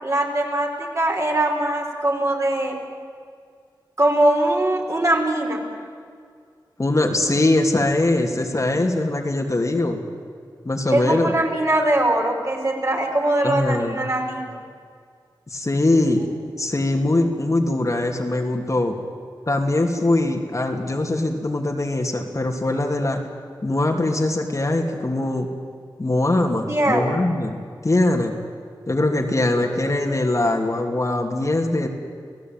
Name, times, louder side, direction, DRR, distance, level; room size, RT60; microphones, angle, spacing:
voice 1, 0.0-2.8 4.0-5.6 10.9-14.4 26.7-27.2, right 1 dB, 40° right, 0 dB, 5.5 m, -21 dB
voice 2, 6.8-10.0 10.6-11.3 13.4-14.0 15.5-16.3 16.6-19.0 19.5-23.2 23.6-25.5 26.0-28.4 28.9-31.9, left 2 dB, 40° left, 2 dB, 2.9 m, -22 dB
28.0 x 17.5 x 9.3 m, 2.1 s
wide cardioid pair, 65°, 8 cm